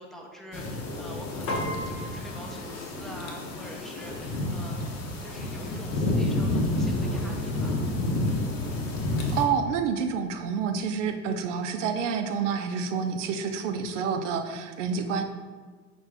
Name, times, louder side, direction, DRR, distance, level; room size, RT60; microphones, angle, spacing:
voice 1, 0.0-4.9 5.2-7.9, equal, ahead, 0 dB, 0.6 m, -45 dB
sound 1, 0.5-9.4, left 1 dB, 45° left, 0.8 m, -30 dB
Piano, 1.5-11.1, left 1 dB, 70° left, 1.0 m, -42 dB
voice 2, 9.3-15.2, right 6 dB, 75° right, 7 dB, 0.5 m, -28 dB
4.4 x 2.5 x 3.4 m, 1.5 s
hypercardioid pair, 75°, 37 cm